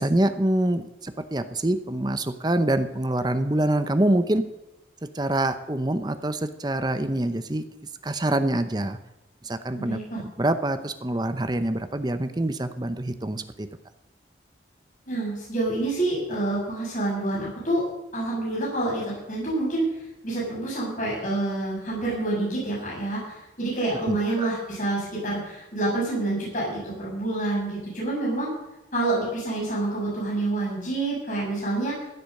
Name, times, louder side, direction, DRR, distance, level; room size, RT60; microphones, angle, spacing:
voice 1, 0.0-4.4 5.1-7.6 8.0-9.0 9.4-13.7 24.1-24.5, right 1 dB, 25° right, 10 dB, 0.8 m, -25 dB
voice 2, 9.7-10.2 15.1-17.8 18.1-19.8 20.2-28.5 28.9-31.9, right 2 dB, 45° left, -5 dB, 6.7 m, -27 dB
15.0 x 8.6 x 6.6 m, 0.94 s
head